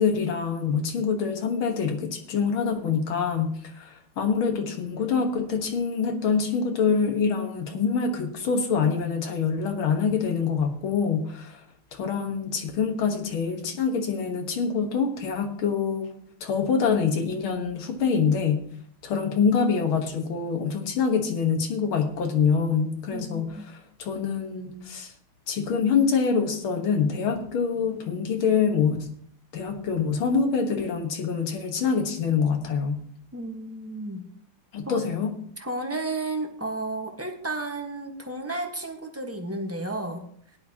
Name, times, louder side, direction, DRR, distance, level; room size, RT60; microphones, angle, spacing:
voice 1, 0.0-11.6 11.9-16.1 16.4-18.7 19.0-25.1 25.5-29.1 29.5-33.0 34.7-35.3, left 6 dB, 70° left, 5 dB, 2.1 m, -25 dB
voice 2, 23.1-23.6 33.3-34.2 34.8-35.0 35.6-40.3, right 2 dB, 10° right, 3 dB, 0.8 m, -32 dB
16.5 x 10.5 x 2.8 m, 0.65 s
omnidirectional pair, 2.4 m